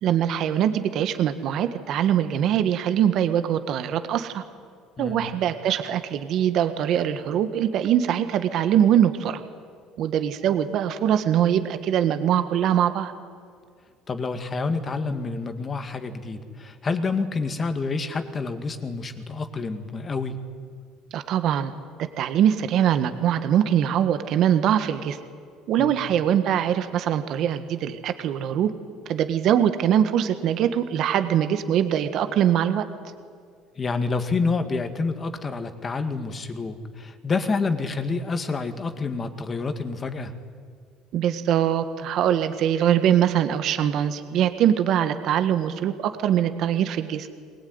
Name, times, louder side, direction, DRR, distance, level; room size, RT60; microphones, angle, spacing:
voice 1, 0.0-4.4 5.0-9.4 10.0-13.1 21.1-21.7 22.2-25.2 25.7-28.7 29.0-32.8 41.1-47.3, right 10 dB, 55° right, 10 dB, 1.5 m, -22 dB
voice 2, 5.0-5.3 14.1-20.4 25.8-26.0 33.8-40.3, left 4 dB, 25° left, 9 dB, 2.0 m, -28 dB
22.5 x 20.0 x 9.6 m, 2.2 s
cardioid pair, 125°, 0 cm